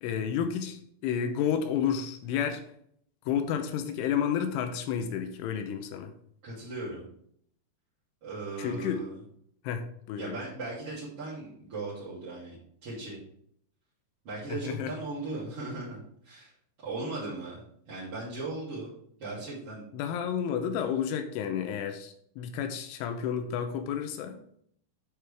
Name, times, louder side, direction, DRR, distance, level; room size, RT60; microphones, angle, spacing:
voice 1, 0.0-2.6 3.3-6.1 8.6-9.0 9.6-10.4 14.5-14.9 19.9-24.4, left 8 dB, 80° left, 7 dB, 3.2 m, -31 dB
voice 2, 6.4-7.0 8.2-9.2 10.2-12.6 12.8-13.2 14.2-16.5 16.8-18.9 19.2-19.8, right 2 dB, 35° right, -10 dB, 2.9 m, -38 dB
9.2 x 7.7 x 3.4 m, 0.66 s
omnidirectional pair, 5.6 m